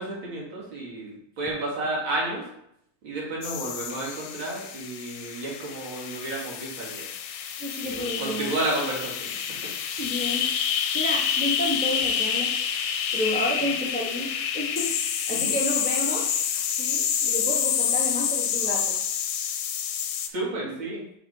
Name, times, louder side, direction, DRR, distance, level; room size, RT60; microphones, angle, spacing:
voice 1, 0.0-2.4 3.0-7.1 7.8-9.3 13.6-13.7 15.3-15.5 20.3-21.0, right 2 dB, 85° right, -5 dB, 2.6 m, -31 dB
sound 1, 3.4-20.3, left 8 dB, 75° left, 1.2 m, -28 dB
voice 2, 7.6-8.5 10.0-10.5 10.9-12.5 13.1-14.3 14.5-19.0, equal, 15° left, -2 dB, 0.3 m, -31 dB
4.8 x 4.3 x 4.7 m, 0.76 s
omnidirectional pair, 2.1 m